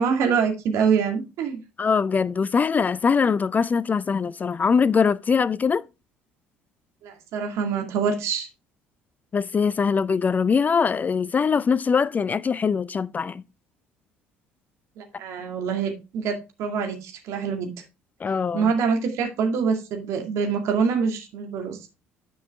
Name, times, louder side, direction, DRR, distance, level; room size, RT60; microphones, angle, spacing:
voice 1, 0.0-1.6 7.0-8.5 15.0-17.7 18.5-21.9, right 6 dB, 60° right, 2.1 m, -25 dB
voice 2, 1.8-5.8 9.3-13.4 18.2-18.7, left 5 dB, 30° left, 0.4 m, -22 dB
10.0 x 5.5 x 3.5 m
hypercardioid pair, 55°, 6 cm